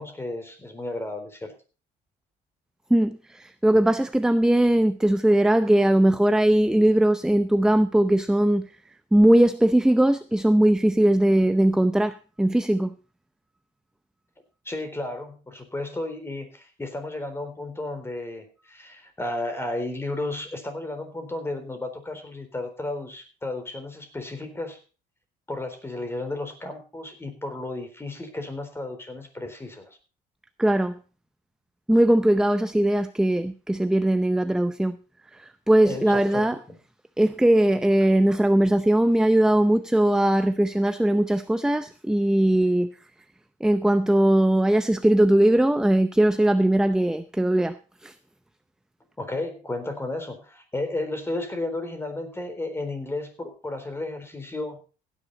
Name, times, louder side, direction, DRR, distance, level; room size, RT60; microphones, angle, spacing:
voice 1, 0.0-1.5 14.6-24.8 25.5-30.0 35.8-36.4 49.2-54.8, left 2 dB, 15° left, 3.9 m, -33 dB
voice 2, 2.9-8.7 9.1-12.9 30.6-30.9 31.9-34.9 35.3-36.6 37.2-42.9 43.6-47.8 48.0-48.1, right 1 dB, 5° right, 0.6 m, -20 dB
16.0 x 10.0 x 4.0 m
cardioid pair, 110°, 17 cm